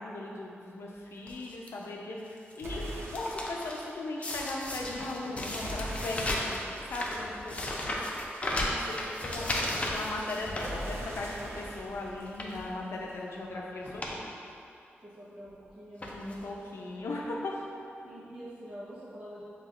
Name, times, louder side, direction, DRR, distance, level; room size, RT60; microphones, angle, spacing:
voice 1, 0.0-8.0 8.5-14.3 16.1-17.6, left 2 dB, 80° left, -2 dB, 0.5 m, -38 dB
sound 1, 1.3-1.7 2.3-2.6 2.9-3.8 4.2-11.3 11.7-11.8 12.3-12.6 13.4-13.6 13.8-14.2 14.5-14.6 15.5-15.6 16.0-16.5 17.2-17.3 17.5-17.6, left 1 dB, 30° left, 0.5 m, -35 dB
sound 2, 2.6-3.9 5.6-8.3 10.6-13.3, right 1 dB, 85° right, 0.7 m, -42 dB
voice 2, 15.0-16.4 18.0-19.4, equal, 45° right, -12 dB, 1.0 m, -46 dB
5.8 x 3.1 x 2.5 m, 2.6 s
wide cardioid pair, 105°, 4 cm